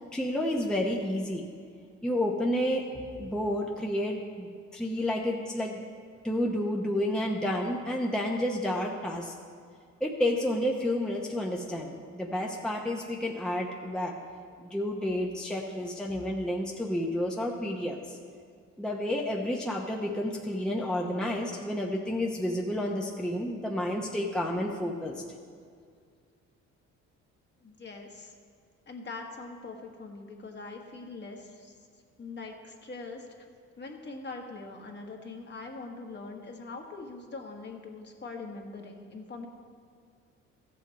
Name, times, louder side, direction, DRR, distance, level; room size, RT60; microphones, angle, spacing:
voice 1, 0.0-1.5 2.0-5.8 6.2-9.3 10.0-14.2 14.6-18.2 18.8-25.2, left 1 dB, ahead, -1 dB, 0.9 m, -30 dB
voice 2, 27.6-28.3 28.9-31.7 32.2-33.3 33.8-39.5, left 3 dB, 35° left, 1 dB, 1.5 m, -42 dB
14.0 x 7.7 x 4.1 m, 2.1 s
cardioid pair, 90°, 30 cm